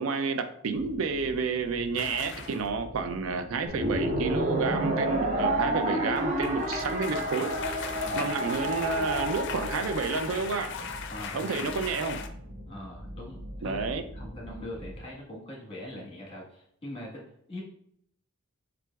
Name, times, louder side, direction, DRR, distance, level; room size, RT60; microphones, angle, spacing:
voice 1, 0.0-7.6 8.2-10.7 11.3-12.2 13.6-14.0, right 4 dB, 70° right, 8 dB, 0.4 m, -30 dB
sound 1, 0.7-15.0, equal, 85° right, 1.4 m, -44 dB
sound 2, 2.0-2.7 6.0-12.3, left 5 dB, 60° left, 0.4 m, -38 dB
sound 3, 3.7-10.2, right 1 dB, 35° right, 0.7 m, -30 dB
voice 2, 7.9-8.3 11.1-11.7 12.6-13.9 14.1-17.2 17.5-17.6, left 1 dB, 25° left, -3 dB, 1.4 m, -42 dB
7.4 x 2.5 x 2.3 m, 0.68 s
head